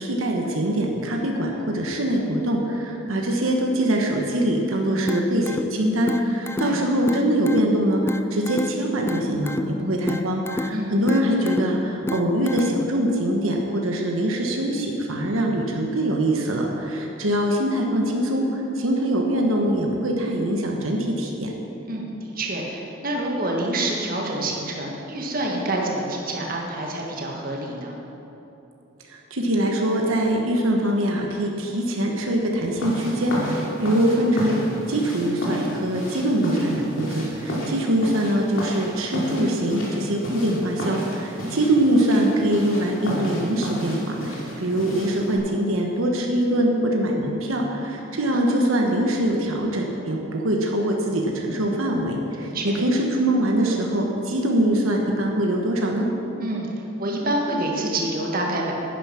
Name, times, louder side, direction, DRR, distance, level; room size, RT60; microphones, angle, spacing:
voice 1, 0.0-8.0 8.3-21.5 29.1-56.1, right 1 dB, 90° right, 1 dB, 1.3 m, -23 dB
sound 1, 5.1-13.1, left 2 dB, 10° left, 0.3 m, -31 dB
voice 2, 21.9-28.0 37.6-37.7 48.0-48.2 52.4-52.8 56.4-56.7 57.0-58.7, right 1 dB, 45° right, -1 dB, 1.7 m, -27 dB
sound 2, 32.8-45.4, equal, 75° left, 2.8 m, -31 dB
10.5 x 9.8 x 5.9 m, 3.0 s
head